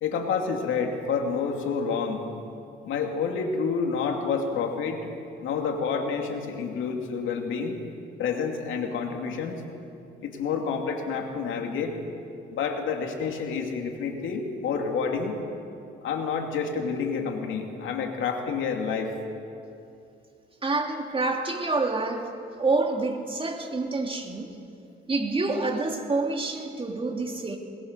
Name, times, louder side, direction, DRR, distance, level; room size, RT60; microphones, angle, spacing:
voice 1, 0.0-2.3 2.8-5.0 5.4-7.8 8.2-9.6 10.2-11.9 12.5-15.4 16.0-19.1, left 5 dB, 80° left, 3 dB, 2.7 m, -29 dB
voice 2, 20.6-24.5 25.1-27.6, right 3 dB, 25° right, 3 dB, 2.6 m, -27 dB
21.0 x 20.5 x 6.8 m, 2.5 s
cardioid pair, 90°, 20 cm